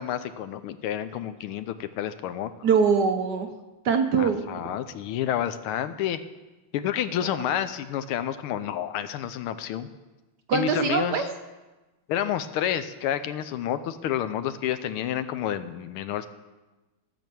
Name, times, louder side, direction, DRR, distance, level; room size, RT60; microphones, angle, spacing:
voice 1, 0.0-2.5 4.2-6.2 6.7-9.9 10.5-11.3 12.1-16.3, left 10 dB, 85° left, 11 dB, 1.6 m, -29 dB
voice 2, 2.6-3.5 3.8-4.4 7.2-7.3 10.5-11.2, right 6 dB, 60° right, 5 dB, 1.2 m, -22 dB
14.0 x 7.1 x 6.1 m, 1.1 s
omnidirectional pair, 2.4 m